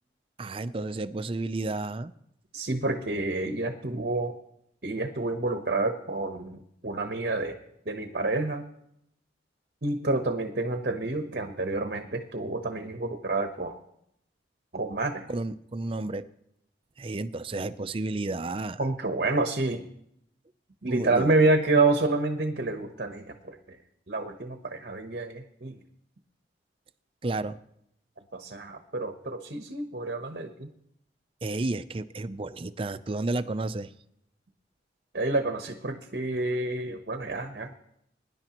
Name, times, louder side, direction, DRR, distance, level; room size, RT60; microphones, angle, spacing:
voice 1, 0.4-2.1 15.3-16.3 17.0-18.8 20.9-21.4 27.2-27.6 31.4-33.9, right 2 dB, 30° right, 12 dB, 0.4 m, -32 dB
voice 2, 2.5-4.3 4.8-7.6 7.9-8.6 9.8-13.7 14.7-15.3 18.8-19.9 20.8-23.6 24.1-25.8 28.3-30.7 35.1-37.7, right 2 dB, 55° right, 6 dB, 1.0 m, -28 dB
22.5 x 10.5 x 3.0 m, 0.75 s
head